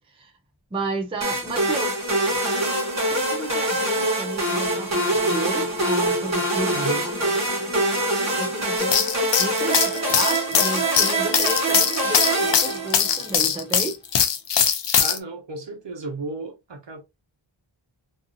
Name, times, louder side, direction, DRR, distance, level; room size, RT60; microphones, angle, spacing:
voice 1, 0.7-2.0 3.1-14.0, right 2 dB, 10° right, 0.4 m, -32 dB
sound 1, 1.2-13.4, right 1 dB, 35° right, 1.1 m, -24 dB
voice 2, 6.7-7.0 15.0-17.0, right 3 dB, 60° right, 0.9 m, -33 dB
sound 2, 8.8-15.2, left 8 dB, 60° left, 0.5 m, -21 dB
2.6 x 2.5 x 2.5 m
wide cardioid pair, 100°, 49 cm